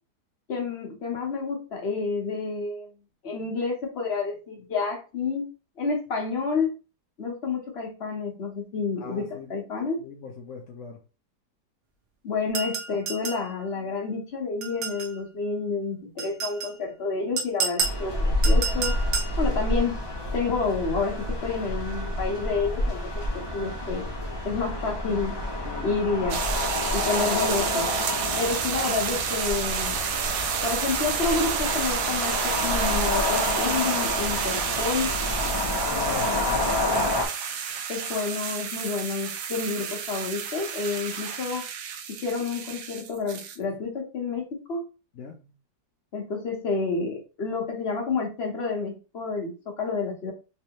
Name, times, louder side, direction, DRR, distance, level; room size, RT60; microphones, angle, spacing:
voice 1, 0.5-2.9 3.2-5.4 5.8-6.8 7.2-10.0 12.2-19.0 19.4-20.0 20.3-24.1 24.4-25.4 25.8-26.4 26.9-27.9 28.4-30.0 30.6-35.1 37.9-41.7 42.1-44.8 46.1-50.3, left 4 dB, 45° left, 1.2 m, -29 dB
voice 2, 9.0-9.5 10.0-11.0 25.6-26.0 35.6-36.7 43.6-43.8 45.1-45.5, left 5 dB, 60° left, 0.9 m, -42 dB
sound 1, 12.5-13.5 14.6-15.2 16.2-16.7 17.4-18.0 18.4-19.4, right 5 dB, 55° right, 0.8 m, -30 dB
sound 2, 17.8-37.3, left 1 dB, 20° left, 0.7 m, -28 dB
sound 3, 26.3-43.6, right 7 dB, 75° right, 1.1 m, -30 dB
3.4 x 3.3 x 2.9 m
omnidirectional pair, 1.8 m